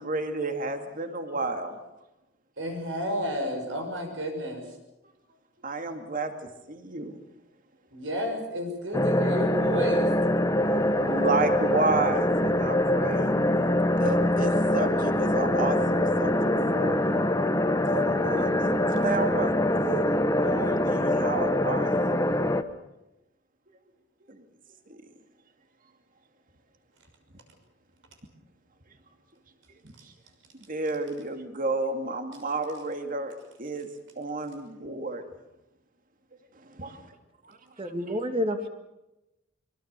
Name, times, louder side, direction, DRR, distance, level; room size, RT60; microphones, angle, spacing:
voice 1, 0.0-1.8 5.6-7.2 10.5-13.3 14.0-17.3 17.9-22.3 24.3-24.4 24.9-25.0 30.5-33.9 34.2-35.2 36.6-37.1 37.4-37.6, right 3 dB, 45° right, 6 dB, 2.5 m, -32 dB
voice 2, 2.6-4.7 7.9-10.1, equal, 75° right, 4 dB, 6.2 m, -31 dB
sound 1, 8.9-22.6, left 1 dB, 15° left, 1.1 m, -24 dB
voice 3, 37.8-38.7, equal, 30° right, 7 dB, 2.3 m, -29 dB
24.0 x 24.0 x 6.9 m, 0.94 s
head